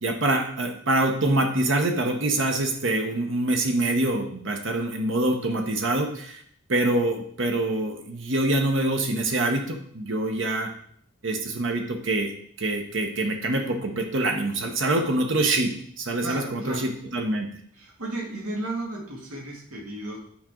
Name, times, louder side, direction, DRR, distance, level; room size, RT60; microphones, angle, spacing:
voice 1, 0.0-6.4 6.7-10.7 11.2-17.5, right 2 dB, 60° right, 3 dB, 1.0 m, -25 dB
voice 2, 16.2-16.9 17.7-20.2, right 2 dB, 90° right, -1 dB, 2.3 m, -34 dB
10.5 x 5.1 x 3.8 m, 0.63 s
head